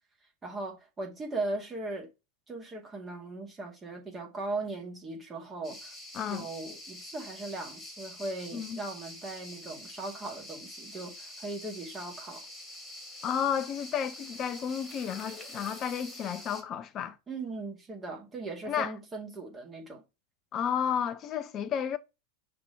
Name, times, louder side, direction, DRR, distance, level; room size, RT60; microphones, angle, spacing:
voice 1, 0.4-2.1 2.5-5.9 6.3-12.5 17.3-20.0, right 2 dB, 15° right, 2.0 m, -38 dB
sound 1, 5.6-16.6, left 1 dB, 15° left, 2.1 m, -46 dB
voice 2, 6.1-6.5 8.5-8.8 13.2-17.2 18.7-18.9 20.5-22.0, left 8 dB, 30° left, 0.7 m, -32 dB
5.9 x 3.7 x 4.5 m
figure-of-eight pair, 90°, 0 cm